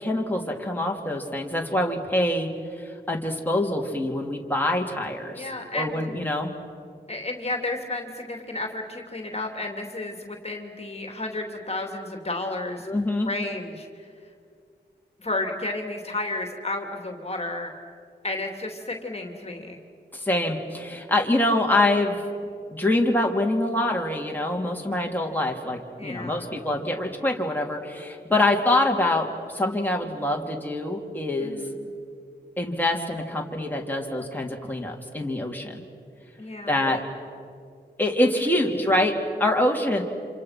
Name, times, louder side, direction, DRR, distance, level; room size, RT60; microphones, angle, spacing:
voice 1, 0.0-2.5 2.8-5.5 5.7-6.5 12.9-13.3 20.1-22.2 22.7-31.6 32.6-35.8 36.7-37.0 38.0-39.1 39.4-40.0, left 1 dB, 10° left, 0 dB, 3.2 m, -25 dB
voice 2, 5.3-5.9 7.1-12.9 13.2-13.9 15.2-17.7 18.2-19.8 26.0-26.5 31.4-31.8 36.4-37.0 38.5-38.7, left 2 dB, 35° left, 3 dB, 3.0 m, -32 dB
27.5 x 27.0 x 6.0 m, 2.3 s
cardioid pair, 50°, 19 cm